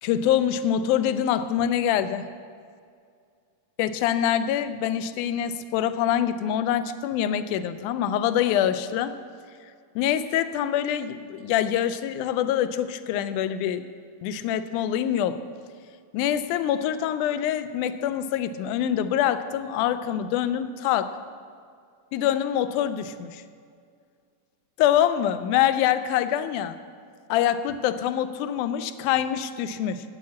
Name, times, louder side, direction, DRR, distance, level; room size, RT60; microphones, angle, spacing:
voice 1, 0.0-2.3 3.8-9.1 10.0-13.9 14.2-15.4 16.1-21.1 22.1-23.4 24.8-26.8 27.3-30.0, left 10 dB, 85° left, 12 dB, 2.0 m, -25 dB
9.3 x 8.4 x 8.5 m, 2.2 s
omnidirectional pair, 3.6 m